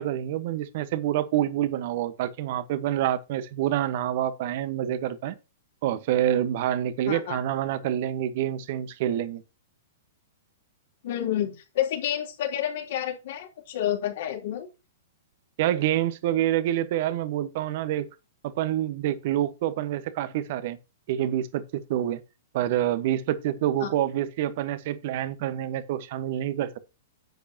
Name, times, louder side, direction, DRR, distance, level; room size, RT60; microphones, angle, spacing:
voice 1, 0.0-5.3 5.8-9.4 15.6-18.1 18.4-20.8 21.1-22.2 22.5-26.8, right 12 dB, 55° right, 1.3 m, -27 dB
voice 2, 7.1-7.4 11.0-14.7 23.8-23.9, left 11 dB, 60° left, 3.5 m, -29 dB
10.5 x 8.5 x 2.9 m
hypercardioid pair, 110°, 0 cm